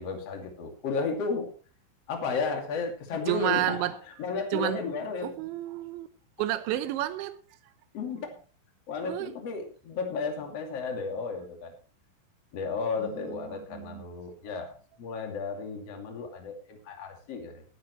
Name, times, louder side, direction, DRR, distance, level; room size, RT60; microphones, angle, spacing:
voice 1, 0.0-1.5 2.1-5.3 7.9-8.3 8.9-11.7 12.5-14.7 15.0-17.6, left 4 dB, 40° left, 2.8 m, -33 dB
voice 2, 3.3-4.0 4.5-4.8 5.2-6.1 6.4-7.4 9.0-9.3 13.0-14.0, right 14 dB, 75° right, 2.9 m, -31 dB
20.0 x 10.5 x 3.2 m
omnidirectional pair, 5.9 m